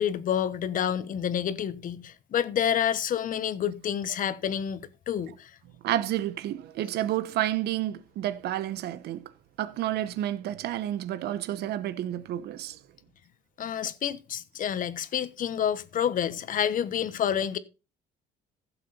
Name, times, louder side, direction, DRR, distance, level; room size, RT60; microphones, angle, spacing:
voice 1, 0.0-5.6 13.6-17.6, left 9 dB, 55° left, 1.2 m, -29 dB
voice 2, 5.8-9.2 9.6-12.8, right 12 dB, 75° right, 1.1 m, -30 dB
15.5 x 7.3 x 4.2 m
cardioid pair, 110°, 17 cm